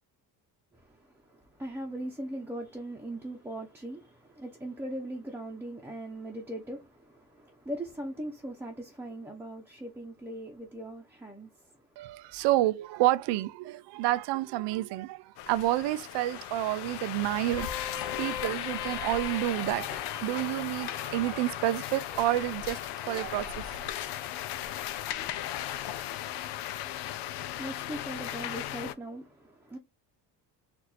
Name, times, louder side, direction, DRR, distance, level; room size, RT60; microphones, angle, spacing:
voice 1, 0.7-11.9 26.8-29.8, right 1 dB, 5° right, 0.8 m, -40 dB
voice 2, 12.0-22.8 23.1-23.8, right 16 dB, 85° right, 0.6 m, -29 dB
sound 1, 15.4-28.9, left 12 dB, 85° left, 0.7 m, -37 dB
Vehicle horn car horn honking, 17.3-23.7, left 8 dB, 65° left, 1.3 m, -44 dB
4.5 x 2.6 x 4.2 m
cardioid pair, 120°, 41 cm